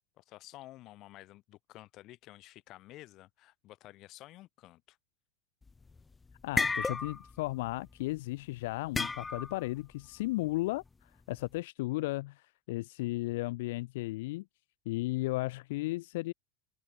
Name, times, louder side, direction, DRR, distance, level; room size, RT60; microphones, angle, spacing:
voice 1, 0.2-5.0, left 17 dB, 45° left, 3.7 m, -52 dB
sound 1, 5.7-6.0 6.3-7.4 7.7-7.9 8.9-9.6, left 4 dB, 10° left, 0.4 m, -32 dB
voice 2, 6.4-14.4 14.9-16.3, left 20 dB, 75° left, 0.4 m, -35 dB
open air
supercardioid pair, 145°, 0 cm